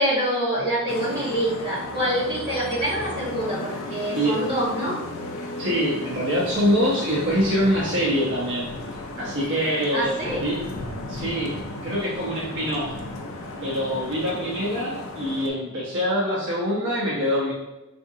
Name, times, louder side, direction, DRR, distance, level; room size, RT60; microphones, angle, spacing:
voice 1, 0.0-5.0 9.9-10.4, equal, 20° right, -9 dB, 1.4 m, -25 dB
Vehicle horn car horn honking / Traffic noise roadway noise, 0.9-15.5, left 2 dB, 65° left, 0.5 m, -35 dB
voice 2, 5.6-10.1 10.4-10.6 11.1-11.6 11.8-12.9 13.6-17.5, equal, 55° right, -6 dB, 0.9 m, -24 dB
3.6 x 2.6 x 2.7 m, 0.97 s
head